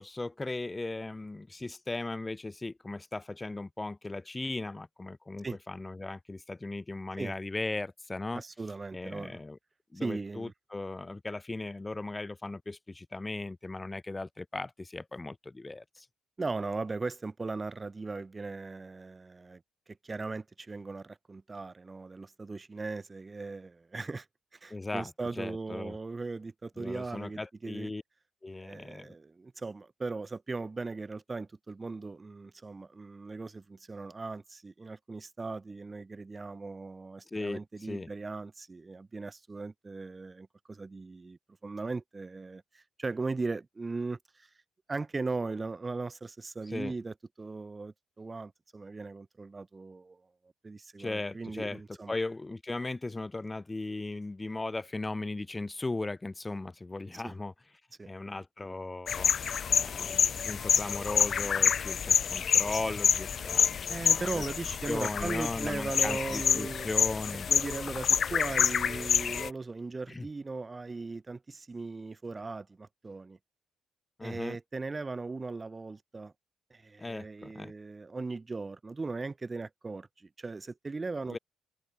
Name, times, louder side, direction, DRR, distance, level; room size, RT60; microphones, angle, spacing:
voice 1, 0.0-8.4 8.9-9.6 9.9-16.1 24.7-25.1 25.4-26.0 26.8-28.0 28.4-29.1 37.3-38.1 46.7-46.9 51.0-51.8 52.1-57.5 58.0-59.3 59.7-60.2 60.5-64.4 64.9-67.5 70.1-70.3 74.2-74.6 77.0-77.7 81.3-81.4, left 2 dB, 20° left, 3.2 m, -37 dB
voice 2, 8.3-9.4 10.0-10.5 16.4-19.6 20.0-24.3 24.6-27.9 28.6-44.5 44.9-50.2 50.6-52.1 57.1-57.3 58.0-58.1 63.9-66.9 67.5-73.4 74.2-76.3 76.7-81.4, right 3 dB, 25° right, 4.5 m, -38 dB
sound 1, 59.1-69.5, left 7 dB, 50° left, 0.4 m, -28 dB
cardioid pair, 90°, 0 cm